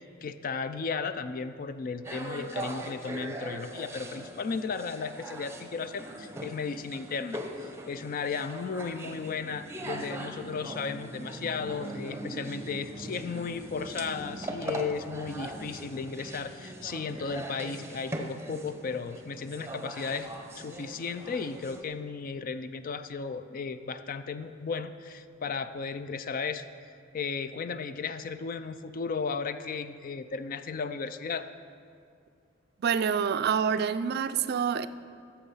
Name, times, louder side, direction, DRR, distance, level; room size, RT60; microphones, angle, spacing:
voice 1, 0.2-7.4 7.9-20.3 20.5-26.6 27.1-31.4, left 5 dB, 45° left, 11 dB, 0.4 m, -35 dB
sound 1, 2.0-21.8, right 1 dB, 15° right, 0.7 m, -40 dB
voice 2, 32.8-34.9, right 7 dB, 55° right, 13 dB, 0.4 m, -27 dB
11.5 x 7.1 x 5.5 m, 2.3 s
head